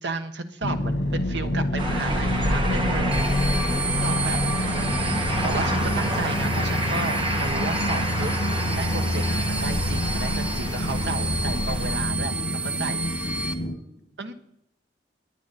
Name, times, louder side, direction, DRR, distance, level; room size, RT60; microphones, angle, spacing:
voice 1, 0.0-3.2 4.0-4.4 4.7-8.3 8.7-13.1 14.2-14.3, right 3 dB, 75° right, 8 dB, 1.4 m, -33 dB
sound 1, 0.6-13.8, left 1 dB, 85° left, 1.5 m, -27 dB
sound 2, 1.8-12.0, right 1 dB, 30° right, 1.9 m, -29 dB
voice 2, 2.0-2.4 4.3-5.0 7.8-8.3 13.5-14.2, equal, 10° left, -6 dB, 7.3 m, -44 dB
sound 3, 3.1-13.5, right 2 dB, 5° right, 1.0 m, -33 dB
21.5 x 9.4 x 4.3 m, 0.78 s
head